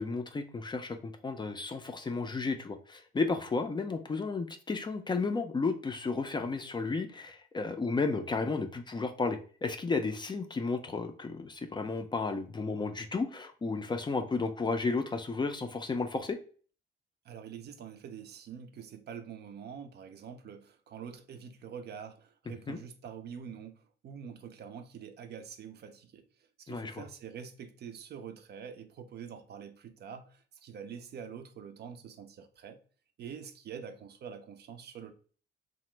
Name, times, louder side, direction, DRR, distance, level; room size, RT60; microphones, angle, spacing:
voice 1, 0.0-16.4 22.7-22.8 26.7-27.0, left 4 dB, 25° left, 0.4 m, -33 dB
voice 2, 17.2-32.8 33.2-35.1, right 7 dB, 55° right, 0.5 m, -45 dB
2.9 x 2.0 x 3.1 m
cardioid pair, 90°, 20 cm